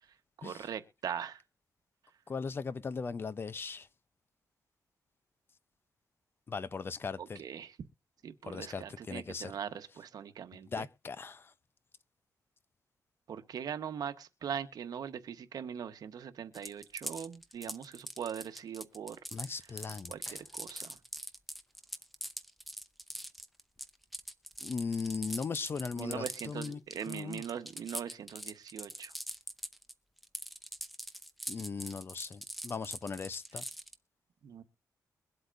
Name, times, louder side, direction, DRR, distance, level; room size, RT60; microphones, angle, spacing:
voice 1, 0.4-1.4 7.4-7.7 8.2-10.8 13.3-19.2 20.1-21.0 26.0-29.1 34.4-34.6, right 8 dB, 80° right, 1.2 m, -41 dB
voice 2, 2.3-3.9 6.5-7.4 8.5-9.6 10.5-11.5 19.3-20.4 24.6-26.8 27.1-27.4 31.5-33.6, left 5 dB, 35° left, 0.6 m, -38 dB
sound 1, 16.5-29.9 30.2-33.9, equal, ahead, 0.7 m, -42 dB
22.5 x 8.0 x 2.6 m
wide cardioid pair, 155°, 7 cm